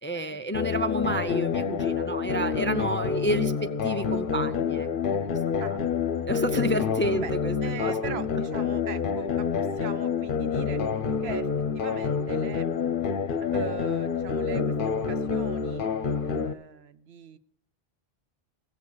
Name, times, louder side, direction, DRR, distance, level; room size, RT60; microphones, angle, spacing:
voice 1, 0.0-5.3 5.6-5.8 6.3-8.0, equal, 15° left, 10 dB, 0.4 m, -30 dB
comin as you are (consolidated), 0.5-16.5, left 6 dB, 55° left, 0.9 m, -28 dB
voice 2, 7.6-10.8 11.2-11.5 11.7-12.7 13.5-15.8 16.2-17.4, right 8 dB, 75° right, 12 dB, 1.0 m, -40 dB
16.0 x 8.2 x 7.0 m, 0.70 s
omnidirectional pair, 1.1 m